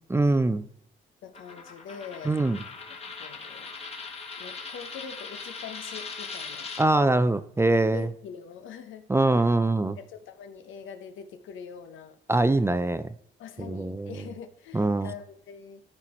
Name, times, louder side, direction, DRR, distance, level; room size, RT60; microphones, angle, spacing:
voice 1, 0.1-0.6 2.3-2.6 6.8-8.1 9.1-10.0 12.3-13.1 13.6-14.1 14.7-15.1, right 2 dB, 10° right, 13 dB, 0.5 m, -23 dB
voice 2, 1.2-2.4 3.2-3.7 4.4-6.7 7.9-9.5 10.0-12.2 13.4-15.8, left 7 dB, 80° left, 9 dB, 1.0 m, -43 dB
Coin (dropping), 1.3-6.9, left 4 dB, 30° left, 1.6 m, -40 dB
13.0 x 4.5 x 4.4 m, 0.68 s
cardioid pair, 90°, 20 cm